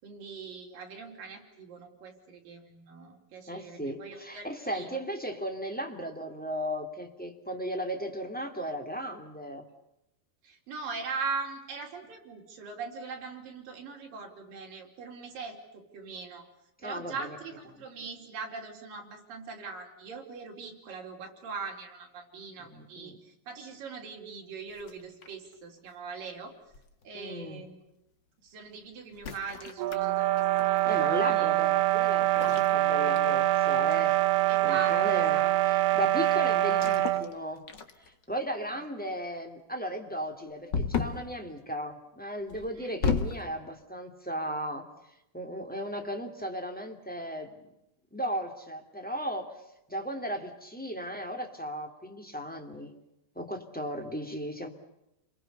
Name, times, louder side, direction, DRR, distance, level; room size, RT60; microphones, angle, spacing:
voice 1, 0.0-4.9 10.4-16.5 16.8-26.5 27.0-27.8 28.4-30.3 30.6-31.5 34.5-35.5 42.5-42.9, right 5 dB, 55° right, 1 dB, 5.6 m, -41 dB
voice 2, 3.5-9.6 16.8-17.4 22.7-23.2 27.1-27.6 30.8-34.1 34.6-37.6 38.3-44.9 45.3-47.5 48.1-49.5 49.9-52.9 53.3-54.7, equal, 5° left, 3 dB, 1.8 m, -36 dB
sound 1, 24.8-25.5 26.7-27.1 29.1-30.8 32.2-33.6 33.9-34.2 36.7-37.3 37.7-38.2 40.7-41.3 42.5-43.5, left 5 dB, 50° left, 1.3 m, -34 dB
sound 2, 29.8-37.3, right 15 dB, 80° right, 3.0 m, -25 dB
30.0 x 22.5 x 6.9 m, 0.87 s
omnidirectional pair, 4.7 m